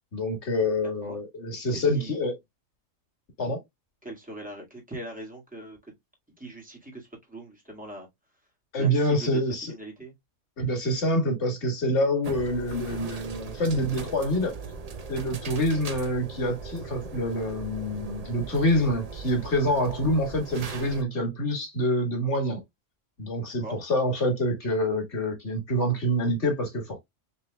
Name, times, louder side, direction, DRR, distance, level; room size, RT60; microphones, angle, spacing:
voice 1, 0.1-2.3 3.4-3.6 8.7-9.7 10.6-14.5 15.1-22.6 23.2-27.0, equal, 60° left, 2.1 m, -26 dB
voice 2, 1.7-2.2 4.0-5.9 6.4-8.1 8.8-9.4 9.7-10.1 23.4-23.8, right 1 dB, 5° right, 1.7 m, -41 dB
sound 1, 12.2-21.0, right 4 dB, 45° right, 0.5 m, -39 dB
5.5 x 3.1 x 2.2 m
omnidirectional pair, 1.3 m